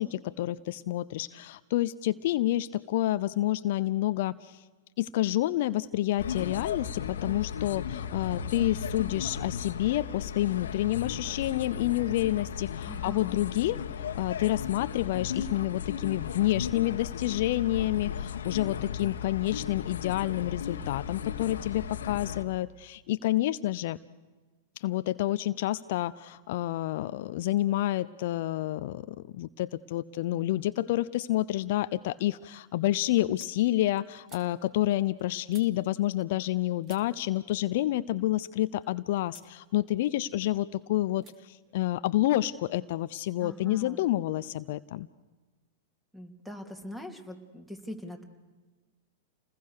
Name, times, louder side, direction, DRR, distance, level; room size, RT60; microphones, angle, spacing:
voice 1, 0.0-4.6 5.0-13.8 14.1-24.0 24.8-45.1, left 15 dB, 60° left, 14 dB, 0.7 m, -29 dB
sound 1, 6.2-22.4, left 7 dB, 75° left, 1.5 m, -36 dB
voice 2, 12.9-13.3 43.4-44.0 46.1-48.2, left 1 dB, 5° right, 5 dB, 3.3 m, -42 dB
sound 2, 30.6-31.1 31.5-36.6 36.8-38.9 39.3-39.6 39.9-40.7 41.2-41.4 41.6-42.7, right 5 dB, 30° right, 2.8 m, -59 dB
29.0 x 20.5 x 6.7 m, 1.3 s
hypercardioid pair, 110°, 0 cm